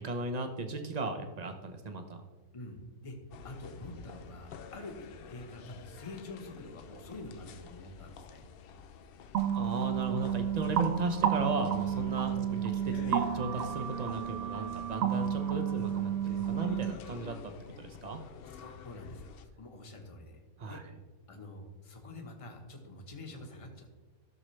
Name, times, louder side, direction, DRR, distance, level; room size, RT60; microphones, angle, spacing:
voice 1, 0.0-2.2 9.5-18.2 20.6-20.8, right 2 dB, 40° right, 6 dB, 0.7 m, -36 dB
voice 2, 2.5-3.2 3.4-8.5 12.3-12.5 18.5-20.4 20.7-20.8 21.3-23.9, left 2 dB, 25° left, 3 dB, 1.1 m, -46 dB
sound 1, 3.3-19.5, left 7 dB, 80° left, 0.5 m, -49 dB
sound 2, 9.3-16.9, right 9 dB, 70° right, 1.0 m, -31 dB
13.5 x 6.5 x 3.2 m, 1.3 s
omnidirectional pair, 1.6 m